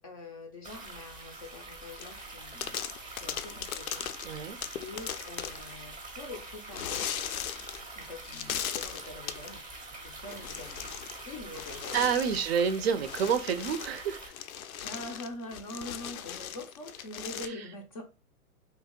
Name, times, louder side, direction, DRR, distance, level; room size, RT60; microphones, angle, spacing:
voice 1, 0.0-2.8 3.1-4.3 4.8-7.0 8.0-9.6 10.0-10.9 11.3-12.1 14.8-18.0, left 2 dB, 25° left, 3 dB, 0.4 m, -44 dB
sound 1, 0.6-14.3, right 3 dB, 10° right, 0.7 m, -45 dB
sound 2, 2.0-2.3 2.6-5.7 6.7-7.9 8.2-9.5 10.3-11.2 11.5-17.5, left 9 dB, 70° left, 0.6 m, -38 dB
voice 2, 4.2-4.6 11.9-14.3 17.5-17.6, right 7 dB, 45° right, 10 dB, 0.5 m, -28 dB
3.1 x 2.8 x 3.6 m, 0.32 s
hypercardioid pair, 125°, 44 cm